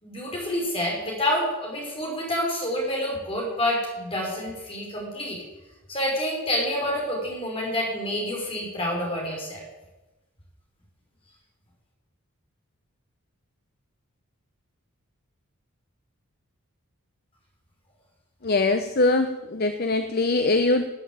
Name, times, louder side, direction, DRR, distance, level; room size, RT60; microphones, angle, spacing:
voice 1, 0.0-5.4 5.9-9.6, left 1 dB, 25° left, -2 dB, 5.6 m, -28 dB
voice 2, 18.4-20.9, left 2 dB, 45° left, 7 dB, 0.9 m, -22 dB
18.0 x 9.0 x 8.8 m, 1.1 s
head